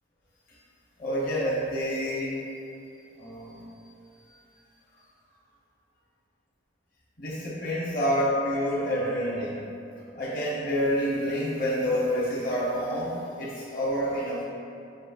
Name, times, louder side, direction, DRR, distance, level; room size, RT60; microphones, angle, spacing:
voice 1, 1.0-2.4 3.2-3.6 7.2-9.6 10.1-14.4, equal, 45° left, -9 dB, 0.8 m, -28 dB
6.1 x 2.7 x 2.3 m, 2.7 s
head